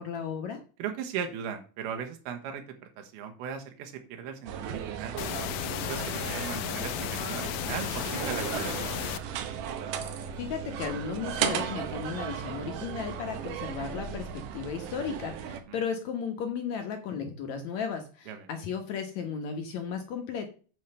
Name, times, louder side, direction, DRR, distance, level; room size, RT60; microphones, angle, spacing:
voice 1, 0.0-0.6 10.4-20.5, left 6 dB, 65° left, 5 dB, 1.9 m, -35 dB
voice 2, 0.8-2.6 3.0-5.1 5.6-8.9 18.3-18.5, right 8 dB, 85° right, 5 dB, 3.1 m, -38 dB
sound 1, 4.5-15.6, right 8 dB, 70° right, 2.3 m, -36 dB
sound 2, 5.2-9.2, left 13 dB, 80° left, 2.2 m, -34 dB
9.2 x 4.5 x 6.6 m, 0.38 s
omnidirectional pair, 4.4 m